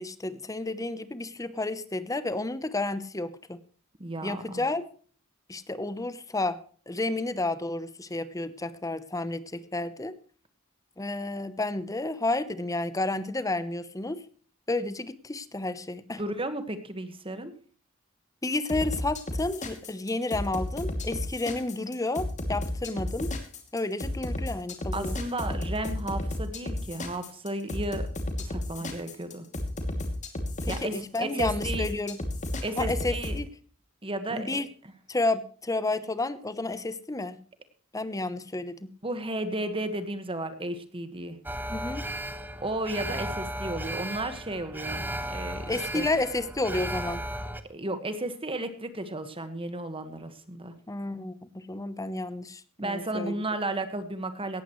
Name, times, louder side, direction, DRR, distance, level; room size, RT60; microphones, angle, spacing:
voice 1, 0.0-3.6 4.2-4.8 5.5-6.6 6.9-10.2 11.0-14.3 14.7-16.2 18.4-23.3 23.7-25.2 30.6-32.2 32.8-33.5 34.3-34.7 35.1-37.4 37.9-38.9 41.7-42.1 45.7-47.3 50.9-53.3, left 2 dB, 15° left, 14 dB, 0.9 m, -31 dB
voice 2, 4.0-4.7 16.2-17.5 24.9-28.1 28.4-29.5 30.7-31.9 32.6-33.4 34.0-34.6 39.0-41.4 42.6-46.1 47.7-50.7 52.8-54.6, right 2 dB, 25° right, 9 dB, 1.6 m, -33 dB
sound 1, 18.7-33.4, left 1 dB, 35° left, 2.6 m, -32 dB
Alarm, 41.5-47.6, right 1 dB, 10° right, 1.0 m, -35 dB
18.0 x 14.5 x 3.2 m, 0.43 s
head